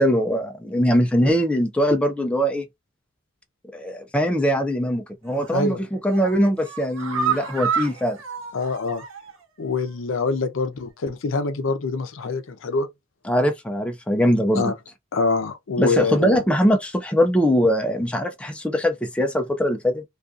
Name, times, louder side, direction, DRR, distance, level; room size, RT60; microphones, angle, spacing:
voice 1, 0.0-2.6 3.7-8.2 13.3-14.6 15.8-20.0, equal, 5° left, 0.3 m, -21 dB
sound 1, 5.3-5.7 6.0-9.4 9.8-9.9 10.2-10.3, right 6 dB, 85° right, 0.7 m, -29 dB
voice 2, 5.5-5.8 8.5-9.0 9.6-12.9 14.6-14.7 15.1-16.4, left 4 dB, 70° left, 0.5 m, -25 dB
2.5 x 2.3 x 2.4 m
head